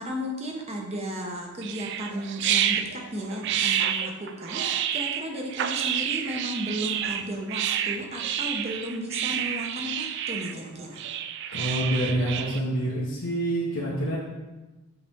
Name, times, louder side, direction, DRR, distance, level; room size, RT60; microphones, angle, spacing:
voice 1, 0.0-11.1, equal, 30° right, 1 dB, 0.8 m, -34 dB
sound 1, 1.6-12.6, right 9 dB, 50° right, 0.3 m, -29 dB
voice 2, 11.5-14.2, right 1 dB, 80° left, -6 dB, 1.1 m, -27 dB
7.9 x 4.2 x 3.6 m, 1.1 s
head